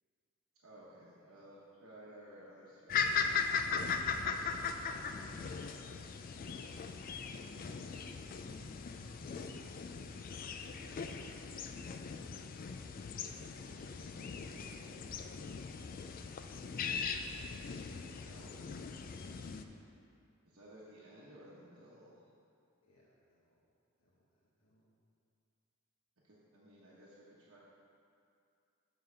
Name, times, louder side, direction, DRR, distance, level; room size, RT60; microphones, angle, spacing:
voice 1, 0.6-3.5 5.2-5.6 13.6-14.6 17.9-19.0 20.5-22.2 26.2-27.6, right 1 dB, 75° right, -8 dB, 1.1 m, -57 dB
sound 1, 2.9-19.6, left 5 dB, 40° left, 0.3 m, -39 dB
voice 2, 8.4-8.9 9.1-9.7 12.1-13.2 22.8-23.6 24.0-24.2 24.6-24.9, left 1 dB, 75° left, -9 dB, 1.2 m, -63 dB
7.1 x 3.9 x 6.6 m, 2.5 s
head